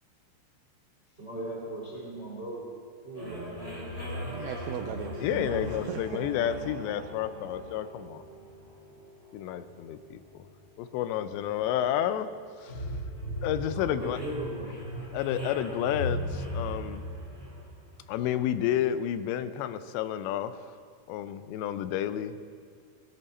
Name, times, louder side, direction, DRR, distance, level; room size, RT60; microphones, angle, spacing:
voice 1, 1.2-2.7 3.0-3.5 13.7-14.8, right 1 dB, 25° right, -3 dB, 1.5 m, -38 dB
sound 1, 3.1-18.6, equal, 15° left, 3.5 m, -39 dB
voice 2, 4.0-6.3, right 10 dB, 85° right, 5 dB, 2.3 m, -39 dB
voice 3, 5.1-8.2 9.3-10.5 10.8-12.3 12.6-12.9 13.4-14.2 15.1-17.0 18.1-20.8 21.1-22.4, left 10 dB, 90° left, 12 dB, 2.9 m, -31 dB
18.5 x 12.5 x 4.2 m, 2.2 s
omnidirectional pair, 5.0 m